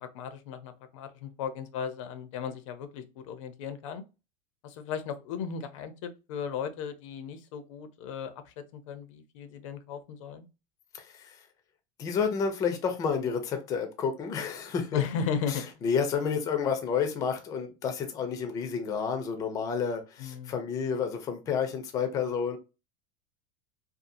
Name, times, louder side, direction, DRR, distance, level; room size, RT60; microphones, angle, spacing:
voice 1, 0.0-4.0 4.6-10.5 14.9-15.6 20.2-20.5, left 7 dB, 75° left, 0.5 m, -36 dB
voice 2, 10.9-11.3 12.0-15.0 15.5-22.6, left 6 dB, 20° left, 0.4 m, -30 dB
2.7 x 2.3 x 2.5 m
supercardioid pair, 160°, 16 cm